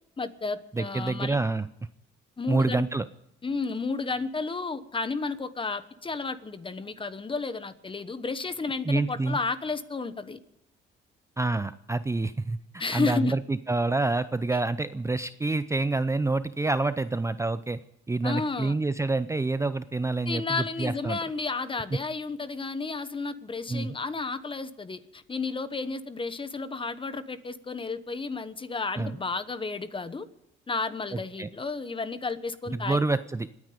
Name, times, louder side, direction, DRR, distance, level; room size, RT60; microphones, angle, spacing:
voice 1, 0.2-1.4 2.4-2.8 3.4-10.4 12.8-13.3 18.2-18.7 20.3-30.3 30.7-33.0, left 4 dB, 25° left, 13 dB, 1.1 m, -32 dB
voice 2, 0.7-1.7 2.5-3.1 8.9-9.4 11.4-17.8 18.1-21.2 21.9-22.0 23.7-23.9 29.0-29.1 31.1-31.5 32.7-33.5, right 3 dB, 15° right, 13 dB, 0.5 m, -27 dB
27.0 x 9.7 x 5.1 m, 0.82 s
cardioid pair, 90°, 20 cm